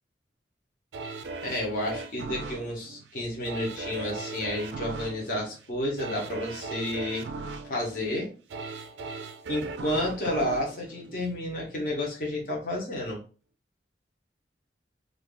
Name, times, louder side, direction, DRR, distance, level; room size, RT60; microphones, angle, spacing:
sound 1, 0.9-11.9 12.3-12.4, right 3 dB, 80° right, 0.3 m, -39 dB
voice 1, 1.4-7.3 7.7-8.3 9.5-13.2, left 1 dB, 50° left, -2 dB, 0.9 m, -31 dB
2.5 x 2.5 x 3.8 m, 0.35 s
head